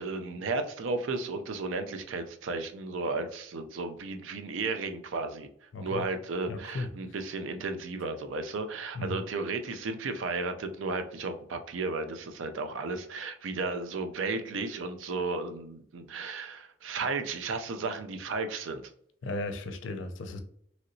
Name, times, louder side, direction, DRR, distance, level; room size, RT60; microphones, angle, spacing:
voice 1, 0.0-5.5 5.8-18.8, right 3 dB, 80° right, 0.4 m, -34 dB
voice 2, 5.7-6.1 6.5-6.9 8.9-9.2 19.2-20.4, left 2 dB, 70° left, 0.5 m, -35 dB
3.1 x 2.8 x 2.6 m
head